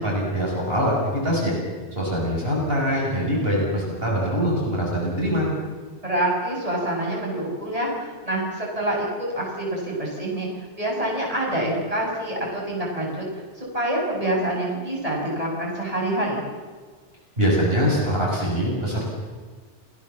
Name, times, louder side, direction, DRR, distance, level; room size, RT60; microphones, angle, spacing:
voice 1, 0.0-1.5 1.9-5.5 17.4-19.1, equal, 55° right, -3 dB, 6.6 m, -23 dB
voice 2, 6.0-10.5 10.8-13.3 13.6-16.4, right 1 dB, 30° right, -3 dB, 7.4 m, -26 dB
30.0 x 19.0 x 7.3 m, 1.5 s
omnidirectional pair, 1.2 m